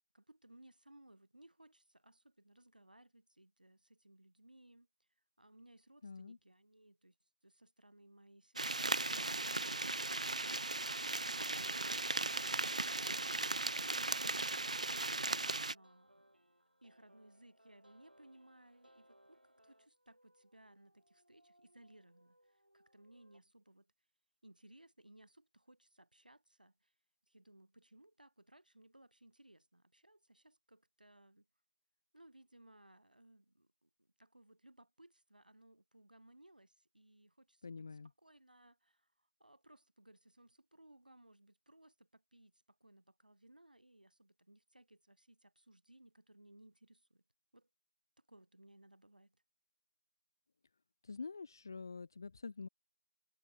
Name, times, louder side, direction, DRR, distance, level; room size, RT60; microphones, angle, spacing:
voice 1, 0.1-5.1 5.4-7.2 7.4-12.4 12.7-16.5 16.8-23.9 24.4-26.9 27.3-31.5 32.1-37.7 38.0-39.1 39.4-47.2 47.5-47.7 48.2-49.4, right 1 dB, 70° right, 4.2 m, -63 dB
voice 2, 6.0-6.4 37.6-38.1 51.0-52.7, left 4 dB, 25° left, 0.6 m, -46 dB
sound 1, 8.6-15.7, right 2 dB, 50° right, 0.3 m, -37 dB
sound 2, 15.0-23.4, right 1 dB, 85° right, 4.1 m, -69 dB
figure-of-eight pair, 165°, 5 cm